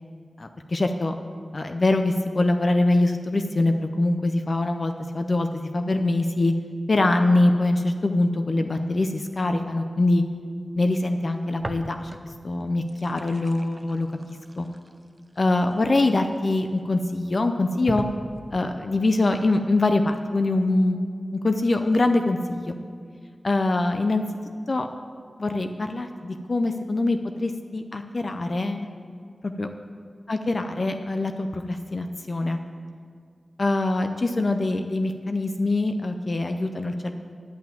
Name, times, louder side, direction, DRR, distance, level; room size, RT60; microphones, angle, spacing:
voice 1, 0.4-1.1 1.5-6.5 6.9-10.2 10.8-12.2 12.4-14.7 15.4-18.0 18.5-21.0 21.3-22.8 23.4-24.2 24.7-24.9 25.4-28.9 29.4-29.7 30.3-32.6 33.6-37.1, left 2 dB, 45° left, 7 dB, 0.5 m, -24 dB
sound 1, 11.6-12.4 12.7-16.7 17.2-17.3 17.9-18.8, right 1 dB, 20° right, 0.6 m, -39 dB
11.0 x 5.9 x 8.9 m, 2.1 s
wide cardioid pair, 110°, 0 cm